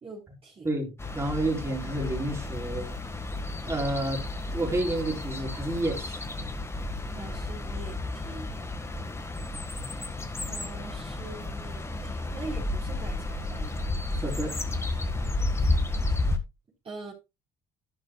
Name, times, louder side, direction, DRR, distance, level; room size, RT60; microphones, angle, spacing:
voice 1, 0.0-0.7 7.1-8.5 10.5-13.8 14.1-14.3 15.6-15.7 16.8-17.1, right 3 dB, 35° right, 3.8 m, -43 dB
voice 2, 0.6-2.9 3.6-4.2 4.5-6.2 14.2-14.5, right 1 dB, 15° right, 4.2 m, -30 dB
sound 1, 1.0-16.4, left 2 dB, 15° left, 1.6 m, -32 dB
11.5 x 10.0 x 2.3 m
cardioid pair, 110°, 17 cm